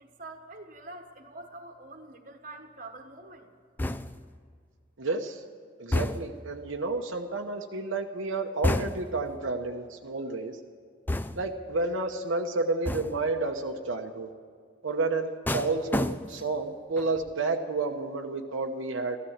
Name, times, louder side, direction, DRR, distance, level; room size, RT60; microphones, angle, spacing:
voice 1, 0.0-3.5, right 2 dB, 40° right, 4 dB, 1.4 m, -45 dB
sound 1, 3.8-4.4 5.9-6.5 8.6-9.2 11.1-11.6 12.9-13.3 15.5-16.6 17.0-17.3, left 1 dB, 10° left, 0.3 m, -30 dB
voice 2, 5.0-5.4 5.8-10.6 11.4-14.3 14.8-19.2, right 3 dB, 75° right, 2 dB, 1.0 m, -30 dB
14.5 x 13.0 x 7.3 m, 2.1 s
head